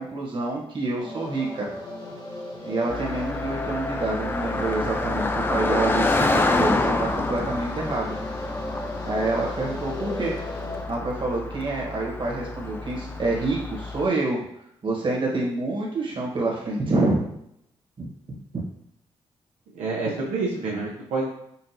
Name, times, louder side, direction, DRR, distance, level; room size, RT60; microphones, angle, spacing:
voice 1, 0.0-1.7 2.6-8.2 9.0-10.4 10.9-14.4 14.8-17.3 18.0-18.6, right 2 dB, 45° right, -2 dB, 1.5 m, -27 dB
sound 1, 1.0-10.8, left 1 dB, 35° left, 1.2 m, -36 dB
Car passing by, 2.9-14.1, left 2 dB, 20° left, 0.4 m, -28 dB
voice 2, 19.8-21.3, right 3 dB, 85° right, -3 dB, 0.7 m, -27 dB
5.6 x 2.5 x 2.8 m, 0.75 s
cardioid pair, 65°, 12 cm